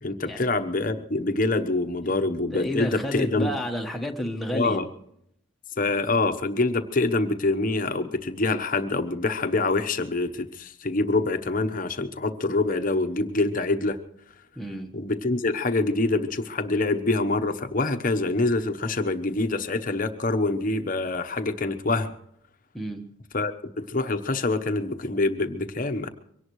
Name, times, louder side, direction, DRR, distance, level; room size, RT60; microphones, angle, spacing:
voice 1, 0.0-3.5 4.5-4.9 5.8-14.0 14.9-22.1 23.3-26.1, left 2 dB, 40° left, 8 dB, 1.0 m, -25 dB
voice 2, 2.5-4.8 14.6-14.9 22.7-23.0, left 1 dB, ahead, 1 dB, 1.3 m, -30 dB
23.5 x 17.5 x 3.2 m, 0.73 s
head